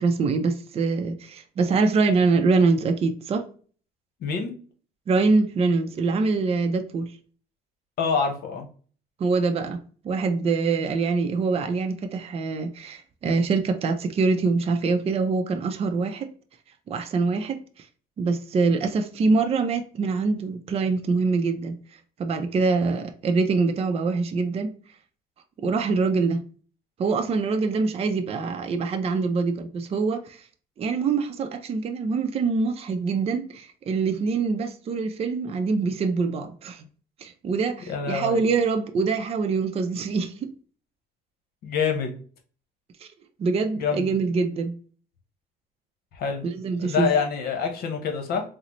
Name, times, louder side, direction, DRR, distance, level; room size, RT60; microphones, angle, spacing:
voice 1, 0.0-3.4 5.1-7.1 9.2-9.8 10.0-16.3 16.9-17.6 18.2-21.8 22.2-24.7 25.6-26.4 27.0-30.4 30.8-36.8 37.2-40.5 43.4-44.7 46.4-47.1, right 4 dB, 35° right, 0.5 m, -24 dB
voice 2, 4.2-4.5 8.0-8.7 37.9-38.4 41.6-42.1 43.7-44.1 46.1-46.5 46.8-48.4, left 6 dB, 70° left, 0.9 m, -26 dB
3.8 x 2.1 x 3.0 m
cardioid pair, 110°, 17 cm